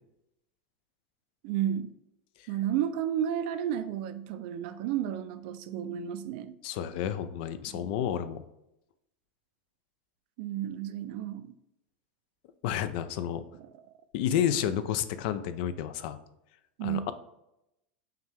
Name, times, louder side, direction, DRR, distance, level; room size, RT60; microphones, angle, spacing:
voice 1, 1.4-1.9 2.5-6.5 7.7-7.9 10.4-11.5 16.8-17.0, right 10 dB, 65° right, 0.4 m, -32 dB
voice 2, 6.6-8.4 12.6-13.4 14.1-16.2 16.8-17.1, left 10 dB, 60° left, 0.4 m, -30 dB
5.5 x 2.2 x 3.4 m
supercardioid pair, 125°, 6 cm